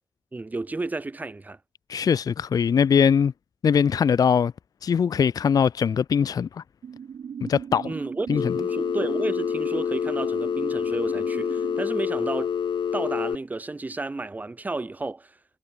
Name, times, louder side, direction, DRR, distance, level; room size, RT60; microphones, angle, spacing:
voice 1, 0.3-1.6 7.8-12.5 12.9-15.3, right 3 dB, 20° right, 5.6 m, -32 dB
voice 2, 1.9-3.3 3.6-4.5 4.8-6.6 7.4-7.9 8.3-8.6, left 7 dB, 45° left, 0.6 m, -21 dB
sound 1, 6.8-11.8, right 7 dB, 60° right, 1.7 m, -37 dB
Telephone, 8.4-13.4, left 7 dB, 65° left, 2.3 m, -27 dB
wide cardioid pair, 180°, 9 cm